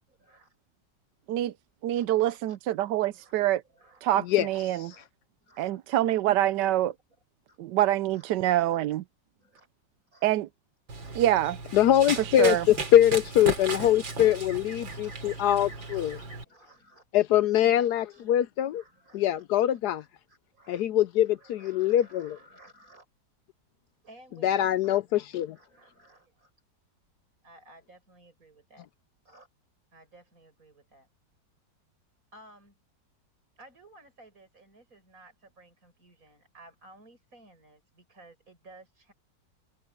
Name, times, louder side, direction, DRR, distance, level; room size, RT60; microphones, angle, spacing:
voice 1, 0.1-0.5 1.9-3.3 3.7-4.1 4.8-5.1 5.4-6.5 7.5-7.6 8.1-8.9 9.4-9.7 10.1-10.2 10.9-11.2 12.2-12.3 12.6-12.8 13.6-17.1 17.4-18.3 18.7-20.8 21.2-23.1 24.0-26.5 27.4-28.9 29.2-29.5 29.9-31.1 32.3-32.7 33.6-39.1, right 2 dB, 45° right, 7.9 m, -56 dB
voice 2, 1.8-3.6 4.0-4.9 5.6-6.9 7.6-9.0 10.2-10.5 11.1-11.6 12.2-12.6, right 13 dB, 70° right, 1.2 m, -25 dB
Run, 10.9-16.4, right 4 dB, 90° right, 4.0 m, -36 dB
voice 3, 11.7-16.2 17.1-18.8 19.1-20.0 20.7-22.4 24.4-25.6, left 11 dB, 70° left, 1.0 m, -23 dB
open air
omnidirectional pair, 2.0 m